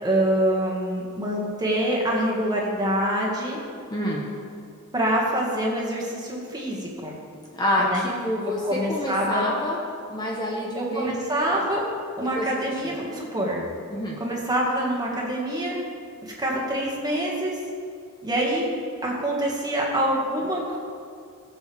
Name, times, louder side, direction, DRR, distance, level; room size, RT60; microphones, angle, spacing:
voice 1, 0.0-3.6 4.9-7.2 7.8-8.0 8.6-9.4 10.7-11.9 12.2-13.6 14.2-15.8 16.2-17.6 18.2-18.7 19.0-20.8, right 1 dB, 20° right, -3 dB, 1.9 m, -25 dB
voice 2, 3.9-4.2 7.5-9.8 10.1-11.2 12.4-12.9 13.9-14.2, left 1 dB, 20° left, -3 dB, 1.1 m, -27 dB
18.5 x 7.2 x 3.6 m, 2.4 s
head